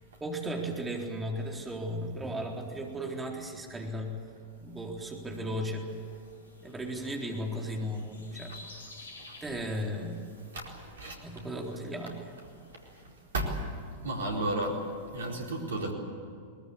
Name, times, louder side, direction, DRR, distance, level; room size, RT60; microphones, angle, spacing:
voice 1, 0.2-4.2 4.6-5.9 6.6-8.6 9.4-10.3 11.2-12.3, equal, 15° right, 0 dB, 4.0 m, -35 dB
sound 1, 5.9-13.0, left 2 dB, 70° left, 3.5 m, -53 dB
voice 2, 14.0-14.8 15.1-15.9, right 1 dB, 65° right, 0 dB, 4.3 m, -31 dB
22.5 x 20.5 x 8.7 m, 2.3 s
figure-of-eight pair, 95°, 0 cm